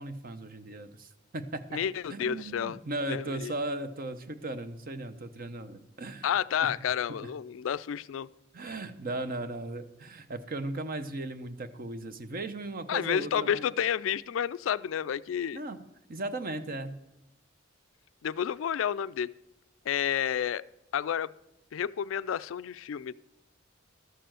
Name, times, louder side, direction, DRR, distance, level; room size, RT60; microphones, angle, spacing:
voice 1, 0.0-1.8 2.1-6.3 6.6-6.7 7.2-7.3 8.5-13.6 15.5-15.8 16.1-17.0, right 2 dB, 50° right, 0.7 m, -37 dB
voice 2, 1.7-2.8 3.1-3.5 6.2-8.3 12.9-15.6 18.2-19.3 19.9-20.6 20.9-21.3 21.7-23.1, left 8 dB, 90° left, 0.4 m, -30 dB
12.5 x 6.8 x 7.6 m
head